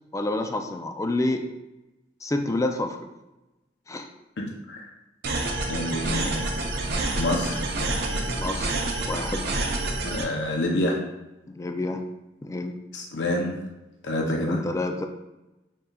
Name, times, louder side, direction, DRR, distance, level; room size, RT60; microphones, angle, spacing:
voice 1, 0.1-1.4 2.2-3.0 3.9-4.1 8.4-8.7 9.0-9.5 11.5-12.0 12.4-12.8 14.4-15.1, left 2 dB, 15° left, 5 dB, 0.3 m, -28 dB
voice 2, 4.4-4.9 5.7-6.5 7.2-7.6 10.1-11.0 12.9-13.5 14.0-14.6, left 1 dB, 75° left, 0 dB, 0.7 m, -27 dB
sound 1, 5.2-10.2, right 2 dB, 60° right, 0.7 m, -28 dB
5.5 x 3.7 x 2.3 m, 0.99 s
head